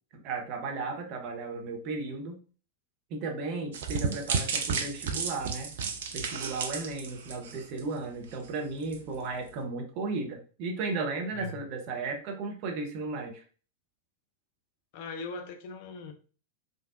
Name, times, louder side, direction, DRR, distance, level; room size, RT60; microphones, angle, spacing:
voice 1, 0.1-2.4 3.1-5.7 6.1-13.4, right 3 dB, 40° right, 0.8 m, -35 dB
sound 1, 3.7-8.0 8.3-8.5 8.9-9.0, right 5 dB, 60° right, 0.4 m, -33 dB
voice 2, 14.9-16.1, left 4 dB, 50° left, 0.5 m, -39 dB
3.3 x 2.6 x 2.4 m
figure-of-eight pair, 90°, 0 cm